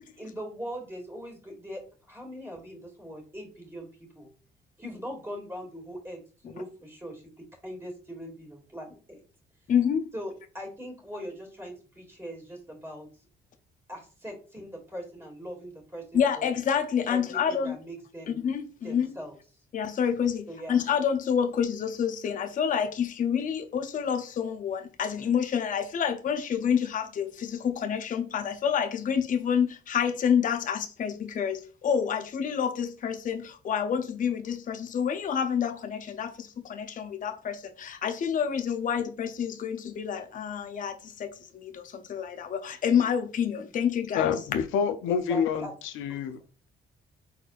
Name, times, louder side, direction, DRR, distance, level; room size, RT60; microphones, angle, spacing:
voice 1, 0.2-1.8 2.1-4.3 4.8-7.2 7.6-9.2 10.1-13.1 13.9-16.5 17.1-18.4 18.8-19.3 20.5-20.8 45.1-45.7 46.2-46.3, equal, 10° right, 2.2 m, -41 dB
voice 2, 9.7-10.1 16.1-17.8 18.3-19.2 19.7-44.3, left 7 dB, 40° left, 0.5 m, -28 dB
voice 3, 44.1-45.7 46.0-46.4, left 7 dB, 90° left, 0.6 m, -27 dB
4.3 x 4.1 x 2.4 m
cardioid pair, 90°, 20 cm